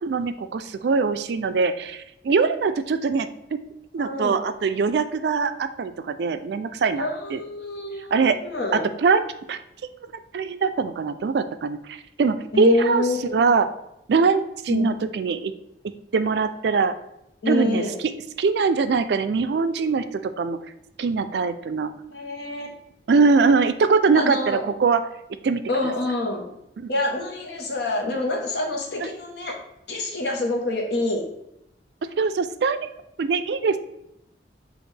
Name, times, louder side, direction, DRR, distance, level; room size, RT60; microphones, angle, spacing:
voice 1, 0.0-3.6 3.9-7.4 8.1-8.4 8.7-9.2 9.5-9.6 10.3-13.7 14.1-15.5 16.1-16.9 17.5-17.8 18.4-20.6 21.0-21.9 23.1-25.0 25.4-25.6 26.8-26.9 32.0-32.9 33.2-33.8, right 4 dB, 75° right, 10 dB, 0.4 m, -22 dB
voice 2, 4.0-4.4 6.9-8.9 12.5-13.4 14.7-15.1 17.4-18.0 22.1-22.8 24.1-24.6 25.7-26.5 26.9-29.5 29.9-31.2, left 2 dB, 75° left, 1 dB, 1.0 m, -27 dB
6.4 x 2.5 x 3.3 m, 0.83 s
head